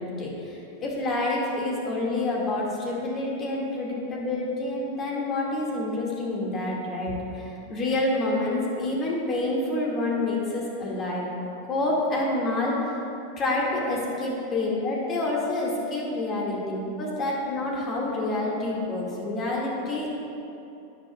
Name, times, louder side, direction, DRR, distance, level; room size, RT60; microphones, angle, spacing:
voice 1, 0.0-11.3 11.7-13.0 13.4-20.2, left 2 dB, 30° left, -3 dB, 2.1 m, -28 dB
11.5 x 9.6 x 2.4 m, 2.8 s
figure-of-eight pair, 90°, 0 cm